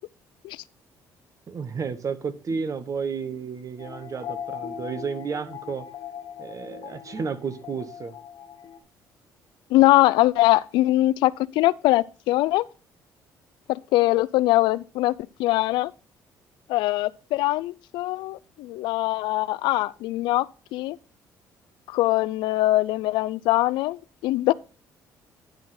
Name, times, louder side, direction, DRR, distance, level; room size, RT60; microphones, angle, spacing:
voice 1, 1.5-5.8 6.4-8.1, right 5 dB, 45° right, 1.1 m, -32 dB
sound 1, 3.8-8.8, left 9 dB, 60° left, 1.2 m, -39 dB
voice 2, 9.7-12.6 13.7-15.1 15.4-15.9 16.7-21.0 21.9-24.5, left 17 dB, 80° left, 0.3 m, -22 dB
10.5 x 3.8 x 5.8 m
supercardioid pair, 70°, 8 cm